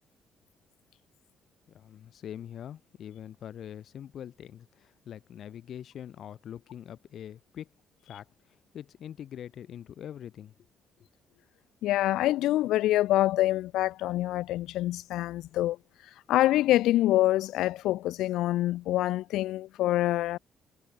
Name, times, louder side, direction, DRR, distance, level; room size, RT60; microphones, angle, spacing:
voice 1, 1.7-7.7 8.0-10.5, left 10 dB, 65° left, 4.2 m, -43 dB
voice 2, 11.8-15.8 16.3-20.4, left 15 dB, 90° left, 1.8 m, -26 dB
cardioid pair, 90°, 0 cm